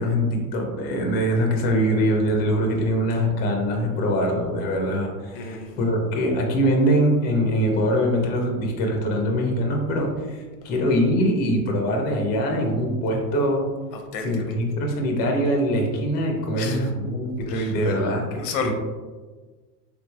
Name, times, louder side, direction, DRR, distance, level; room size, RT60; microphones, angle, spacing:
voice 1, 0.0-13.6 14.2-18.7, equal, 20° left, 1 dB, 0.4 m, -23 dB
voice 2, 5.3-5.7 13.9-14.4 16.6-16.9 17.5-18.0 18.4-18.7, left 5 dB, 90° left, 4 dB, 0.8 m, -32 dB
3.6 x 3.1 x 2.2 m, 1.4 s
supercardioid pair, 120°, 48 cm